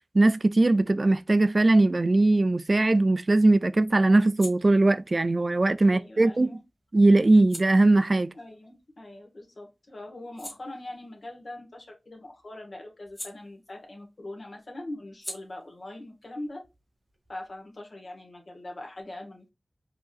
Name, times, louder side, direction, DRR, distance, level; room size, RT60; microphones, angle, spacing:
voice 1, 0.1-6.6 6.9-8.3, right 2 dB, 50° right, 0.3 m, -20 dB
sound 1, 4.2-9.5 9.9-14.1 14.4-17.8, left 1 dB, 20° left, 1.9 m, -48 dB
voice 2, 5.8-6.6 8.3-16.6 17.3-19.5, left 1 dB, 65° left, 1.4 m, -42 dB
4.6 x 3.0 x 2.4 m
wide cardioid pair, 50°, 0 cm